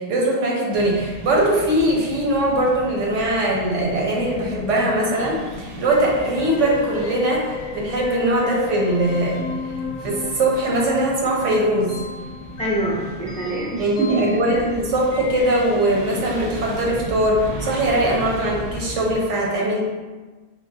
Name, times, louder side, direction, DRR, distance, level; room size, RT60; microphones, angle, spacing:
voice 1, 0.0-9.4 10.0-12.0 13.8-19.8, right 1 dB, 90° right, -3 dB, 1.2 m, -21 dB
sound 1, 0.7-19.2, equal, 60° right, 0.8 m, -36 dB
sound 2, 5.9-16.0, left 4 dB, 60° left, 0.6 m, -34 dB
voice 2, 12.6-14.6, right 2 dB, 10° left, -5 dB, 0.3 m, -25 dB
4.1 x 3.0 x 2.6 m, 1.3 s
omnidirectional pair, 1.2 m